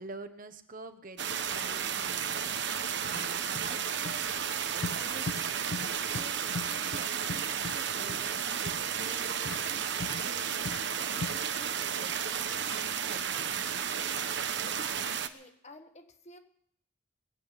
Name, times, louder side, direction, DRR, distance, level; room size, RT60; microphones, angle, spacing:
voice 1, 0.0-5.6 6.1-13.5, right 2 dB, 40° right, 8 dB, 1.1 m, -48 dB
sound 1, 1.2-15.3, right 8 dB, 60° right, 1.0 m, -33 dB
sound 2, 2.6-2.7 3.0-3.3 3.5-3.8 4.0-4.2 4.8-5.0 5.3-5.4 5.7-5.9 6.1-6.3 6.5-7.8 8.1-8.2 8.6-8.8 9.4-9.6 10.0-10.2 10.6-10.8 11.2-11.4, left 3 dB, 55° left, 0.6 m, -38 dB
voice 2, 14.6-16.4, left 2 dB, 35° left, 6 dB, 1.4 m, -53 dB
20.5 x 7.9 x 8.2 m, 0.67 s
head